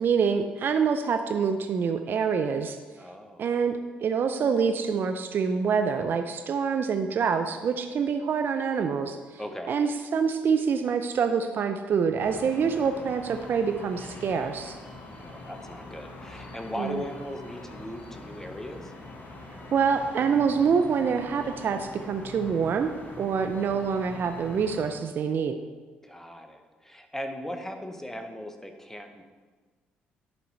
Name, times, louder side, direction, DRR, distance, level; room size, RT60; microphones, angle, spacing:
voice 1, 0.0-2.8 3.4-14.8 16.7-17.0 19.7-22.9 23.2-25.6, right 6 dB, 50° right, 7 dB, 0.5 m, -26 dB
voice 2, 3.0-3.5 9.4-9.7 15.1-18.9 26.0-29.2, equal, 10° left, 6 dB, 1.0 m, -38 dB
sound 1, 12.2-24.9, left 2 dB, 40° left, 1.3 m, -43 dB
11.0 x 4.3 x 4.1 m, 1.4 s
hypercardioid pair, 50°, 5 cm